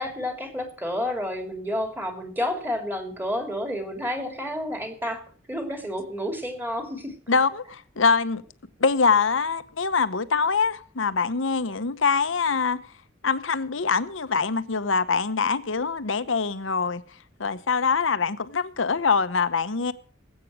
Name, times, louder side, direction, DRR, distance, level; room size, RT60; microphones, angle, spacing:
voice 1, 0.0-7.1, left 1 dB, 10° right, 2.7 m, -30 dB
voice 2, 7.3-8.4 8.8-12.8 13.2-17.0 17.4-19.9, left 5 dB, 75° left, 0.9 m, -24 dB
19.0 x 8.4 x 6.1 m
head